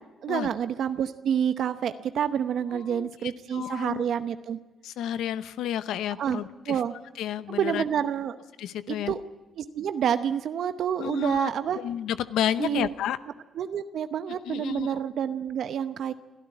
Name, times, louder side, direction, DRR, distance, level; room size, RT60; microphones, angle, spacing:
voice 1, 0.2-4.6 6.2-6.4 6.7-6.9 7.5-8.4 8.9-9.2 9.6-11.8 12.6-12.9 13.6-16.1, right 8 dB, 65° right, 10 dB, 0.8 m, -28 dB
voice 2, 2.7-3.1 3.5-4.0 4.8-6.8 7.2-7.8 8.6-9.1 11.0-13.2 14.3-15.0, left 10 dB, 85° left, 14 dB, 0.8 m, -31 dB
24.5 x 13.5 x 10.0 m, 1.2 s
cardioid pair, 90°, 0 cm